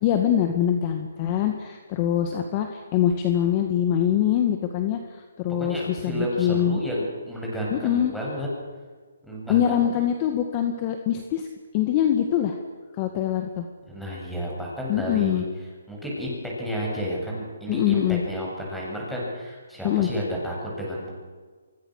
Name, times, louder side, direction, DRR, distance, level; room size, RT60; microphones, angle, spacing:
voice 1, 0.0-6.8 7.7-8.1 9.5-11.5 11.7-12.6 13.0-13.6 14.9-15.4 17.7-18.2 19.8-20.1, left 10 dB, 25° left, 5 dB, 2.0 m, -24 dB
voice 2, 5.6-8.5 9.2-9.8 13.9-15.4 15.9-21.1, equal, ahead, -5 dB, 7.7 m, -31 dB
25.5 x 24.5 x 6.6 m, 1.5 s
hypercardioid pair, 160°, 0 cm